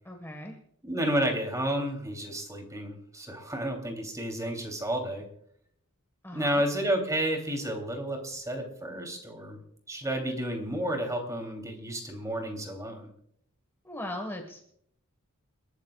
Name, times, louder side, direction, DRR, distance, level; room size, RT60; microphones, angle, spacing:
voice 1, 0.0-0.6 6.2-6.6 13.8-14.6, left 1 dB, 10° left, 2 dB, 1.6 m, -38 dB
voice 2, 0.8-5.3 6.3-9.6 9.9-13.1, right 1 dB, 15° right, 4 dB, 3.2 m, -31 dB
30.0 x 13.0 x 2.4 m, 0.68 s
head